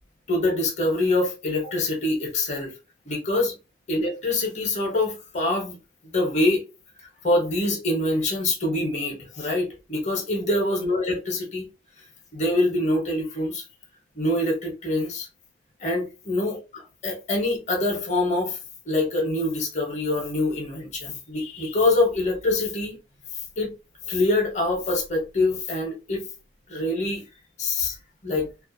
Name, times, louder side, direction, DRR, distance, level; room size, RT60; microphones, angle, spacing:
voice 1, 0.3-2.7 3.1-3.5 3.9-5.8 6.1-6.6 7.0-11.7 12.3-13.6 14.2-15.3 15.8-18.6 18.9-23.0 23.6-23.7 24.1-26.2 26.7-27.2 27.6-28.0 28.2-28.5, left 2 dB, 35° left, 0.7 m, -25 dB
2.4 x 2.1 x 2.5 m
head